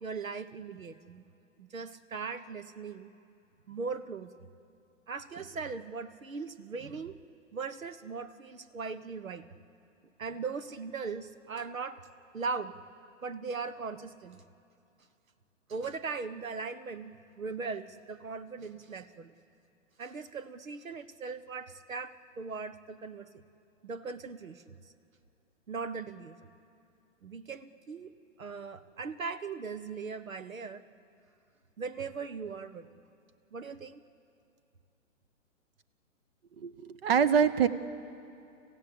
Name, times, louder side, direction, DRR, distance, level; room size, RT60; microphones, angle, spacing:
voice 1, 0.0-1.3 1.6-3.1 3.7-4.5 5.1-7.2 7.5-9.4 10.2-12.0 12.3-12.8 13.2-14.4 15.7-19.3 20.0-23.3 23.8-24.7 25.7-26.4 27.2-30.8 31.8-33.0 33.5-34.0, right 4 dB, 90° right, 13 dB, 1.2 m, -39 dB
voice 2, 36.6-37.7, right 7 dB, 45° right, 14 dB, 1.1 m, -25 dB
28.0 x 15.5 x 8.4 m, 2.7 s
hypercardioid pair, 130°, 39 cm